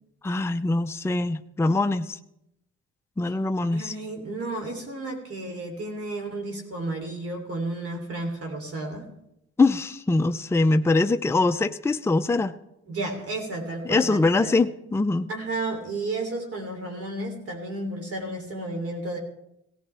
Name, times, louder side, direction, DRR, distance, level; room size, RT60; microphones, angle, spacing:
voice 1, 0.2-2.2 3.2-3.9 9.6-12.5 13.9-15.3, left 3 dB, 10° left, 9 dB, 0.5 m, -23 dB
voice 2, 3.7-9.1 12.8-14.5 15.3-19.2, right 2 dB, 50° right, 2 dB, 3.1 m, -32 dB
17.5 x 15.0 x 3.4 m, 0.83 s
cardioid pair, 90°, 30 cm